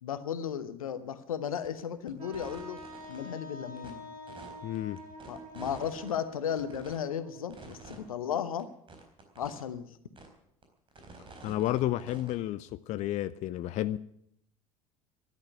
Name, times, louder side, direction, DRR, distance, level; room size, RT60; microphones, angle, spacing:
voice 1, 0.0-2.8 3.1-4.1 5.3-8.7 9.4-9.9, left 8 dB, 70° left, 1.1 m, -35 dB
sound 1, 1.6-1.8 2.1-3.2 3.8-3.9 4.3-6.2 6.5-7.0 7.5-8.0 8.3-8.4 8.6-8.7 8.9-9.6 10.2-10.3 10.6-12.4, right 3 dB, 30° right, 4.2 m, -48 dB
Wind instrument woodwind instrument, 2.2-8.0, right 1 dB, 75° right, 7.6 m, -47 dB
voice 2, 4.6-5.0 11.4-14.0, left 14 dB, 40° left, 0.5 m, -31 dB
13.0 x 10.5 x 9.7 m
figure-of-eight pair, 65°, 18 cm